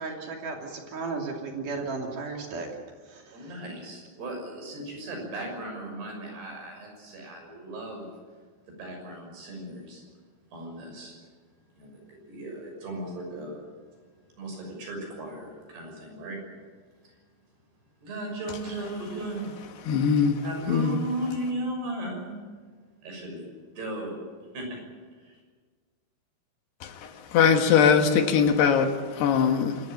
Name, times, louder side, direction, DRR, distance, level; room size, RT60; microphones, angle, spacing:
voice 1, 0.0-2.7 3.1-3.6, right 4 dB, 50° right, 4.1 m, -35 dB
voice 2, 3.3-8.1 8.8-10.0 10.5-11.1 11.8-13.6 14.4-16.4 17.0-17.1 18.0-19.7 20.4-22.4 23.0-23.5 23.8-24.2 24.5-24.8 25.2-25.4, right 1 dB, 65° right, 8.2 m, -36 dB
voice 3, 19.9-20.4 20.7-21.0 26.8-26.9 27.3-29.8, left 6 dB, 70° left, 3.4 m, -21 dB
26.0 x 14.5 x 9.1 m
omnidirectional pair, 5.0 m